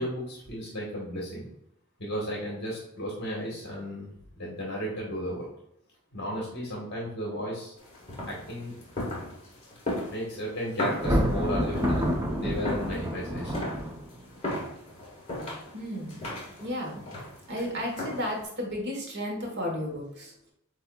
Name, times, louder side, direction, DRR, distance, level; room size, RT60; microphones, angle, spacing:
voice 1, 0.0-1.5 2.0-5.4 6.1-7.7 8.3-8.7 10.1-13.6, equal, 55° left, -3 dB, 1.2 m, -34 dB
sound 1, 7.8-18.4, left 1 dB, 30° left, 1.6 m, -37 dB
Thunder, 10.9-14.3, equal, 15° right, 0.6 m, -28 dB
voice 2, 15.7-16.2 16.6-17.0 17.5-20.3, equal, 55° right, 0 dB, 1.2 m, -33 dB
8.0 x 2.7 x 2.3 m, 0.78 s
head